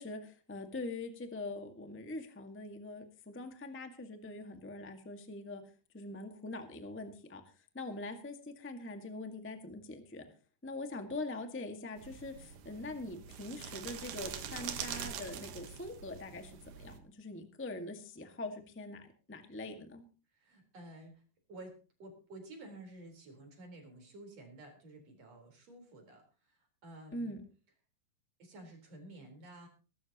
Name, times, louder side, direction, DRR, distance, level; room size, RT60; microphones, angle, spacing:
voice 1, 0.0-5.6 5.9-7.4 7.7-10.2 10.6-20.0 27.1-27.4, left 2 dB, 15° left, 6 dB, 0.4 m, -43 dB
sound 1, 12.0-17.0, right 8 dB, 75° right, 2.9 m, -44 dB
voice 2, 20.3-21.2 21.5-27.3 28.4-29.7, right 1 dB, 50° right, 3 dB, 5.3 m, -52 dB
22.5 x 12.5 x 3.0 m, 0.35 s
omnidirectional pair, 3.9 m